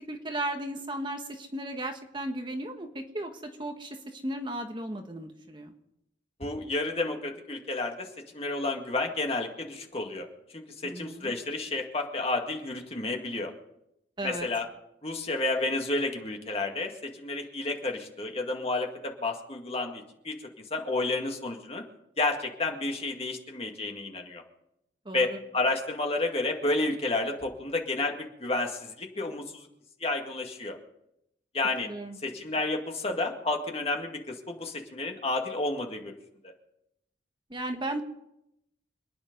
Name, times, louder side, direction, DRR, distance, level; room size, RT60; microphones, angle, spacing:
voice 1, 0.0-5.7 10.8-11.3 14.2-14.5 25.0-25.4 31.8-32.2 37.5-38.0, right 1 dB, 25° right, 4 dB, 1.3 m, -35 dB
voice 2, 6.4-8.1 8.3-10.3 10.5-13.5 14.2-14.7 15.0-20.4 20.7-21.8 22.2-24.4 25.1-29.7 30.0-30.8 31.5-31.9 32.2-36.1 36.4-36.5, left 2 dB, 35° left, 2 dB, 2.1 m, -31 dB
26.5 x 9.9 x 5.4 m, 0.82 s
head